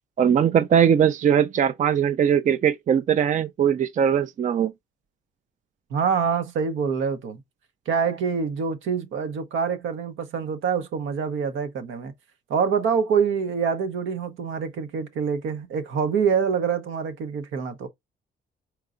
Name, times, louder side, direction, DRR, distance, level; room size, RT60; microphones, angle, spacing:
voice 1, 0.2-4.7, right 8 dB, 40° right, 0.4 m, -20 dB
voice 2, 5.9-7.4 7.9-12.1 12.5-17.9, right 6 dB, 80° right, 0.9 m, -25 dB
4.5 x 3.8 x 2.5 m
cardioid pair, 90°, 20 cm